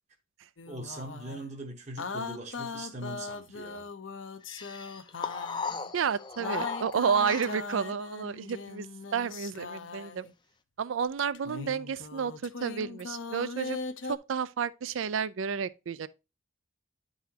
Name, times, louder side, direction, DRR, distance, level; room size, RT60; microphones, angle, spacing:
sound 1, 0.6-1.5 2.0-5.9 6.4-10.3 11.3-14.2, left 4 dB, 70° left, 0.7 m, -39 dB
voice 1, 0.7-3.9, right 1 dB, 35° right, 0.9 m, -41 dB
sound 2, 4.5-7.8, left 5 dB, 20° left, 0.5 m, -37 dB
voice 2, 5.9-10.3 10.8-13.8 14.0-16.1, right 6 dB, 75° right, 0.4 m, -31 dB
10.5 x 4.0 x 2.8 m
head